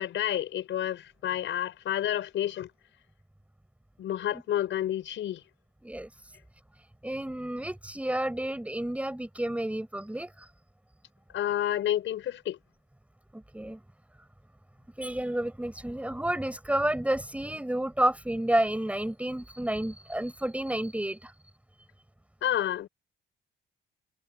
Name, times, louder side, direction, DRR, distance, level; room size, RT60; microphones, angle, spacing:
voice 1, 0.0-2.7 4.0-5.4 11.3-12.6 22.4-22.9, left 11 dB, 75° left, 5.3 m, -30 dB
voice 2, 5.8-6.3 6.8-10.5 13.3-13.8 15.0-21.3, right 1 dB, 5° right, 7.9 m, -30 dB
cardioid pair, 90°, 20 cm